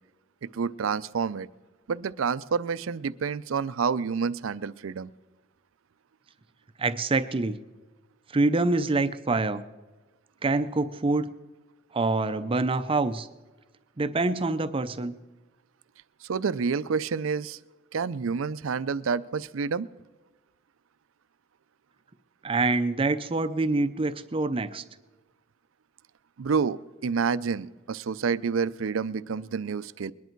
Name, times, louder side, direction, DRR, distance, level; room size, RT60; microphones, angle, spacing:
voice 1, 0.4-1.5 1.9-5.1 16.2-17.6 17.9-19.9 26.4-30.1, right 5 dB, 80° right, 16 dB, 0.5 m, -28 dB
voice 2, 6.8-7.6 8.3-9.6 10.4-11.3 11.9-13.3 14.0-15.1 22.4-24.8, right 3 dB, 25° right, 11 dB, 0.5 m, -26 dB
21.5 x 10.5 x 4.5 m, 1.2 s
head